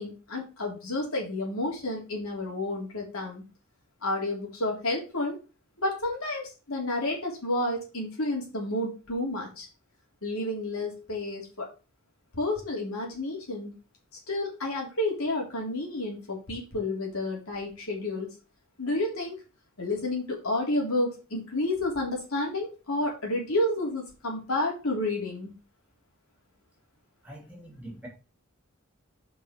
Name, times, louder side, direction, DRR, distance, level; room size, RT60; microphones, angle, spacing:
voice 1, 0.0-3.4 4.0-5.4 5.8-9.7 10.2-11.7 12.3-13.7 14.3-18.3 18.8-19.4 19.8-25.5, left 1 dB, 80° left, -1 dB, 3.1 m, -30 dB
voice 2, 27.2-28.1, right 1 dB, 5° right, -2 dB, 3.0 m, -44 dB
5.4 x 5.4 x 5.8 m, 0.32 s
head